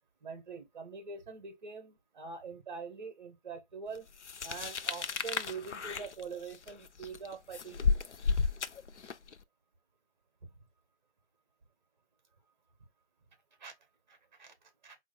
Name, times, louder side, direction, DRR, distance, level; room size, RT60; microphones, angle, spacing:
voice 1, 0.2-4.1 4.4-8.0 10.4-10.5 13.6-13.7 14.1-15.0, right 5 dB, 40° right, 1.1 m, -44 dB
sound 1, 4.2-9.3, left 5 dB, 90° left, 0.6 m, -33 dB
4.5 x 2.2 x 3.8 m
figure-of-eight pair, 155°, 34 cm